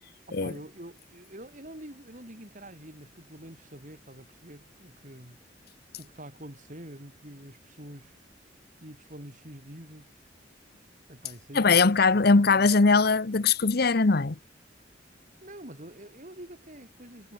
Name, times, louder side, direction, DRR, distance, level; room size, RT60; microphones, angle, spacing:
voice 1, 0.4-5.4 6.0-8.2 8.8-10.1 11.1-12.7 15.4-17.3, right 1 dB, 45° right, 6.4 m, -46 dB
voice 2, 11.5-14.4, left 4 dB, 55° left, 0.9 m, -21 dB
head